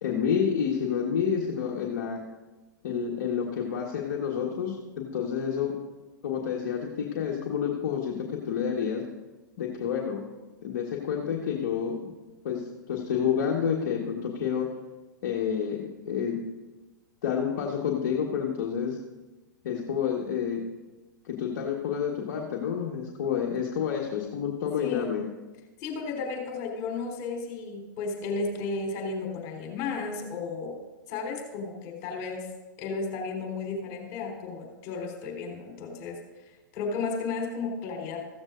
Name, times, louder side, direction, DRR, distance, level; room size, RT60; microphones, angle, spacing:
voice 1, 0.0-2.2 2.8-5.8 6.2-9.0 9.6-10.2 10.6-12.0 12.4-14.7 15.2-15.8 16.0-16.4 17.2-19.0 19.6-20.6 21.3-25.2, left 7 dB, 60° left, -2 dB, 1.5 m, -29 dB
voice 2, 24.8-25.1 25.8-30.8 31.1-32.5 32.8-36.2 36.7-38.3, left 4 dB, 40° left, 0 dB, 4.0 m, -33 dB
15.0 x 14.0 x 2.6 m, 1.2 s
figure-of-eight pair, 110°, 11 cm